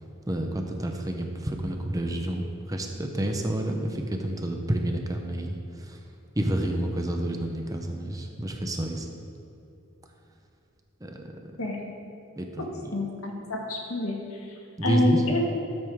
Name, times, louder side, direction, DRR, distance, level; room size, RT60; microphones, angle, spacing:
voice 1, 0.3-6.0 6.3-9.1 11.0-11.5 12.4-12.9 14.8-15.2, right 1 dB, 15° right, 3 dB, 0.8 m, -29 dB
voice 2, 12.9-14.1 14.8-15.4, left 1 dB, 80° left, 0 dB, 1.8 m, -27 dB
13.5 x 9.3 x 3.6 m, 2.8 s
head